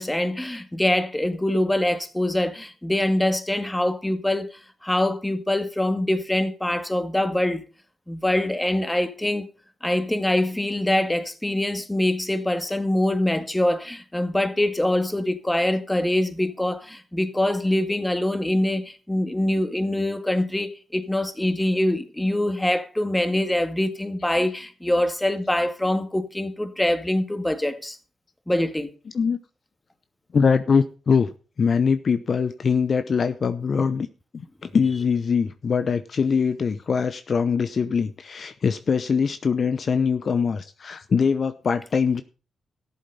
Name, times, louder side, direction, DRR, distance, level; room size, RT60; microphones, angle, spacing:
voice 1, 0.0-7.6 8.1-9.5 9.8-28.0 28.5-28.9, left 1 dB, 10° left, 2.0 m, -24 dB
voice 2, 30.3-31.3 31.6-34.1 34.3-42.2, left 6 dB, 55° left, 0.8 m, -22 dB
13.5 x 7.9 x 5.5 m
hypercardioid pair, 45°, 0 cm